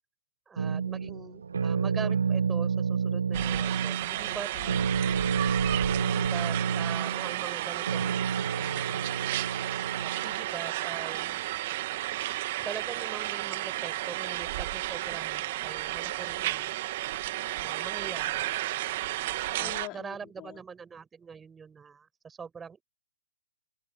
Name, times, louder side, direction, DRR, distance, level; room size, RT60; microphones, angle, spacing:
voice 1, 0.5-4.5 5.9-8.2 8.6-9.1 10.0-11.4 12.6-16.7 17.5-18.6 19.6-22.8, right 6 dB, 10° right, 5.0 m, -43 dB
sound 1, 0.6-10.5, right 6 dB, 85° right, 1.4 m, -30 dB
sound 2, 3.3-19.9, right 16 dB, 40° right, 1.4 m, -32 dB
voice 2, 4.2-5.5 19.6-20.6, left 21 dB, 25° left, 4.4 m, -46 dB
open air
hypercardioid pair, 150°, 0 cm